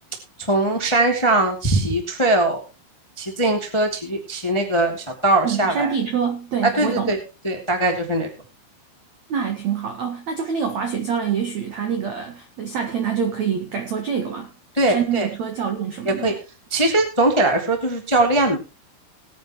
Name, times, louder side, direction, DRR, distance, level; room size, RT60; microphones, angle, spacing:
voice 1, 0.5-2.6 3.2-5.0 5.2-5.9 6.7-7.2 7.4-8.3 14.7-15.3 16.0-16.3 16.7-18.6, right 2 dB, 20° left, 0.8 m, -20 dB
voice 2, 5.4-7.1 9.3-14.5 14.9-16.3, right 7 dB, 85° right, 1.5 m, -25 dB
20.0 x 9.5 x 3.0 m
omnidirectional pair, 5.7 m